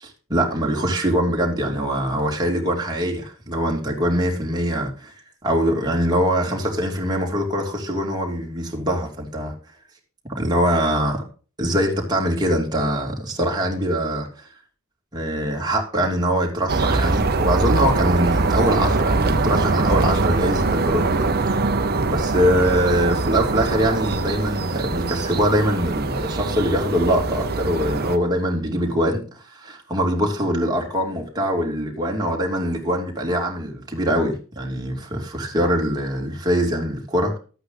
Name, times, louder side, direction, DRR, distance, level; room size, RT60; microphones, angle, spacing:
voice 1, 0.0-5.1 5.4-9.5 10.3-11.2 11.6-14.3 15.1-21.5 22.0-29.2 29.5-37.4, equal, 20° right, 2.9 m, -23 dB
sound 1, 16.7-28.2, right 3 dB, 45° right, 1.0 m, -22 dB
12.0 x 8.7 x 4.0 m
head